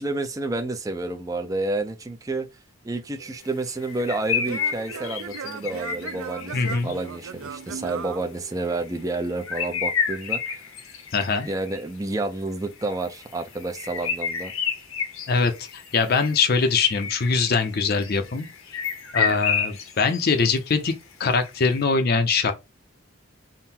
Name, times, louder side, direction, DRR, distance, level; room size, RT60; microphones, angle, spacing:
voice 1, 0.0-2.5 2.8-10.6 11.4-14.5, right 2 dB, 15° right, 0.4 m, -30 dB
Singing / Plucked string instrument, 3.2-9.0, right 6 dB, 80° right, 0.4 m, -38 dB
sound 1, 3.8-7.1 8.6-8.9 9.2-11.8 12.6-20.3 20.6-20.7 21.4-21.8, left 6 dB, 75° left, 0.8 m, -30 dB
voice 2, 6.5-6.9 11.1-11.5 15.3-18.5 19.1-20.9 21.2-22.5, left 4 dB, 45° left, 0.5 m, -22 dB
3.7 x 2.1 x 4.2 m
head